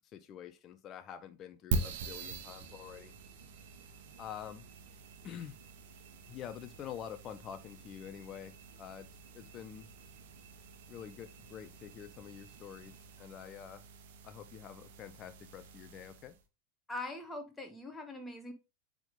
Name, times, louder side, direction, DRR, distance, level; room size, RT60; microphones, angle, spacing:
voice 1, 0.1-3.1 4.2-4.7 5.2-5.6 6.3-9.1 9.3-9.9 10.9-13.8 14.2-16.4, left 9 dB, 35° left, 0.6 m, -47 dB
sound 1, 1.7-16.4, right 3 dB, 55° right, 1.2 m, -44 dB
voice 2, 16.9-18.5, left 2 dB, 10° left, 1.2 m, -42 dB
9.0 x 3.6 x 3.8 m
figure-of-eight pair, 85°, 0 cm